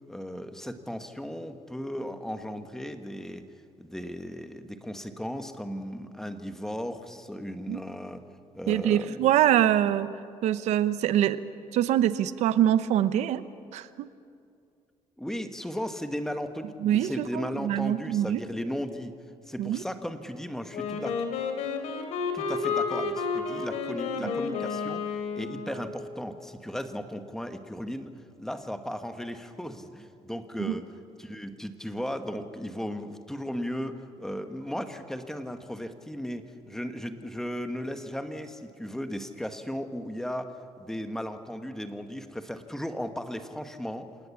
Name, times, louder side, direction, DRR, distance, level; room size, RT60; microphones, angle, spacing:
voice 1, 0.1-3.5 3.8-8.2 8.5-9.3 15.2-19.1 19.5-21.2 22.3-30.9 31.2-44.1, equal, 5° left, 8 dB, 1.3 m, -36 dB
voice 2, 8.7-10.1 10.4-11.4 11.7-13.4 13.7-14.1 16.8-18.4 19.6-19.8 24.2-24.3 30.6-30.7, right 11 dB, 80° right, 14 dB, 0.8 m, -24 dB
Wind instrument woodwind instrument, 20.7-25.9, left 5 dB, 90° left, 2.7 m, -31 dB
27.5 x 18.5 x 7.1 m, 2.4 s
cardioid pair, 130°, 12 cm